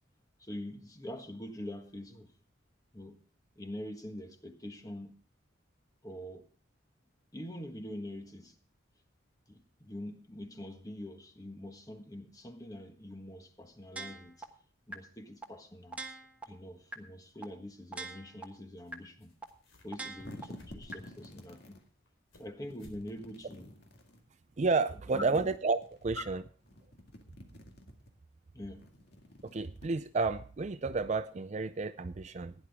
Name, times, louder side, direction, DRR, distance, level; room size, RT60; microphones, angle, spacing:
voice 1, 0.4-2.3 2.9-3.2 3.5-5.1 6.0-6.5 7.3-8.5 9.5-14.5 14.9-16.0 16.5-19.3 19.8-21.8 22.4-23.7 25.1-25.5 28.5-28.9, left 1 dB, 20° left, 6 dB, 1.4 m, -44 dB
sound 1, 14.0-14.4 14.9-15.0 15.4-15.5 15.9-16.4 16.9-17.0 17.4-17.5 17.9-18.4 18.9-19.0 19.4-19.5 19.9-20.4 20.9-21.0, right 2 dB, 5° right, 1.2 m, -41 dB
sound 2, 18.8-18.9 19.2-20.0 20.3-21.1 21.6-22.5 22.8-23.0 23.4-23.5 24.0-24.1, left 1 dB, 80° left, 4.0 m, -56 dB
sound 3, 20.0-21.8 22.6-24.2 25.2-26.2 26.6-28.1 28.7-30.5, left 1 dB, 55° left, 2.1 m, -52 dB
voice 2, 24.6-26.4 29.4-32.5, right 3 dB, 35° right, 11 dB, 0.4 m, -31 dB
16.0 x 10.5 x 3.6 m, 0.41 s
head